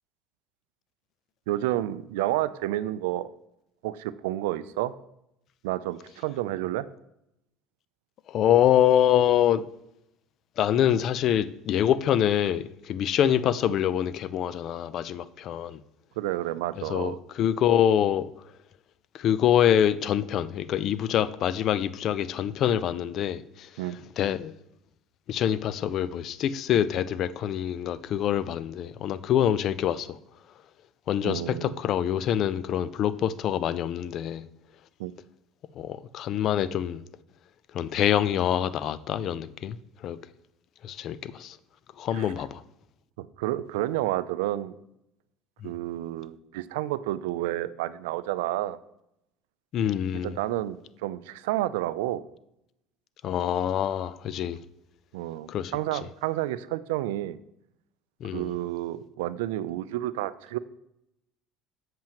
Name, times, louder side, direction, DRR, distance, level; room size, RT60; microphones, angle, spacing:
voice 1, 1.5-3.3 3.8-4.9 5.6-6.9 16.2-17.2 23.8-24.0 31.2-31.8 35.0-35.1 42.1-42.3 43.2-44.8 45.6-48.8 50.2-52.2 55.1-57.4 58.3-60.6, right 15 dB, 90° right, 0.3 m, -30 dB
voice 2, 8.3-9.6 10.6-15.8 16.9-18.3 19.1-23.7 24.2-24.5 25.3-30.1 31.1-34.4 35.8-37.0 37.7-39.8 40.0-40.2 40.8-41.6 42.0-42.6 45.6-45.7 49.7-50.3 53.2-54.6 55.5-55.7 58.2-58.5, left 10 dB, 55° left, 0.4 m, -25 dB
7.5 x 7.5 x 2.9 m
supercardioid pair, 90°, 0 cm